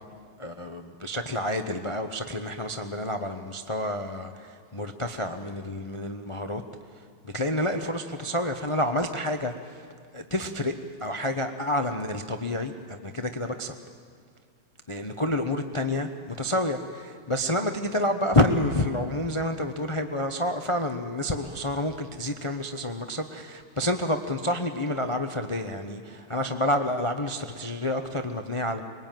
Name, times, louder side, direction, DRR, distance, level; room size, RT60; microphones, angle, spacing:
voice 1, 0.4-6.6 7.2-9.5 10.1-10.7 11.0-13.7 14.9-28.8, left 1 dB, 50° left, 6 dB, 0.3 m, -29 dB
24.5 x 22.0 x 9.1 m, 2.1 s
omnidirectional pair, 2.3 m